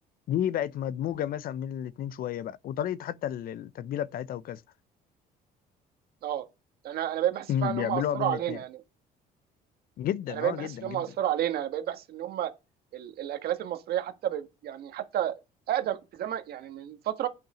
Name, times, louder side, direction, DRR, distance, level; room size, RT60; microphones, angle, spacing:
voice 1, 0.3-4.6 7.5-8.6 10.0-11.1, left 10 dB, 60° left, 0.6 m, -31 dB
voice 2, 6.8-8.8 10.3-12.5 12.9-15.4 15.7-17.3, right 11 dB, 65° right, 1.5 m, -31 dB
9.0 x 6.0 x 5.0 m
cardioid pair, 110°, 17 cm